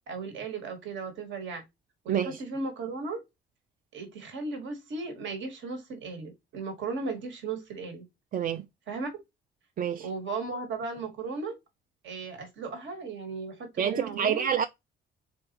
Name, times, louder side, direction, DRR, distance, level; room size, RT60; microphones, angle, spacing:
voice 1, 0.1-1.6 2.0-3.2 3.9-8.0 8.9-9.1 10.0-11.5 12.0-14.5, right 4 dB, 70° right, 1.4 m, -36 dB
voice 2, 2.1-2.4 8.3-8.7 9.8-10.1 13.8-14.7, right 8 dB, 45° right, 0.4 m, -27 dB
4.0 x 3.4 x 2.9 m
cardioid pair, 90°, 20 cm